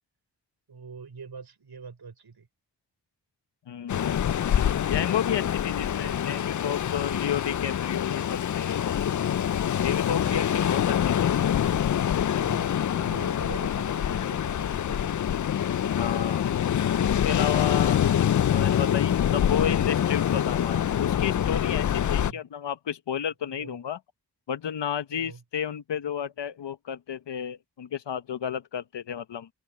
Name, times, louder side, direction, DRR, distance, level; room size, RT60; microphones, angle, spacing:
voice 1, 0.7-2.5 6.0-6.1 9.0-9.5 10.1-10.7 12.3-15.2 22.1-22.4 23.5-23.8 25.1-25.4, right 5 dB, 65° right, 5.6 m, -44 dB
voice 2, 3.7-4.3 4.9-8.9 9.8-11.5 16.0-16.5 17.0-24.0 24.5-29.5, left 9 dB, 80° left, 1.1 m, -32 dB
Ocean, 3.9-22.3, left 9 dB, 45° left, 0.5 m, -25 dB
open air
cardioid pair, 45°, 42 cm